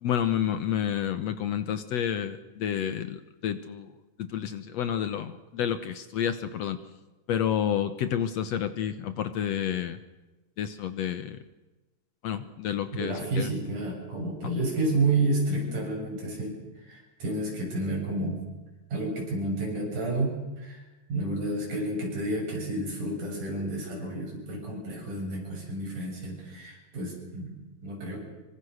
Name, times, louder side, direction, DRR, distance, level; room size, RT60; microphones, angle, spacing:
voice 1, 0.0-3.9 4.2-6.8 7.3-10.0 10.6-11.4 12.2-13.5 14.4-14.5, left 9 dB, 65° left, 11 dB, 1.9 m, -30 dB
voice 2, 12.9-18.4 18.9-20.8 21.1-28.3, right 2 dB, 75° right, 0 dB, 8.9 m, -30 dB
26.0 x 24.5 x 6.5 m, 1.1 s
omnidirectional pair, 3.7 m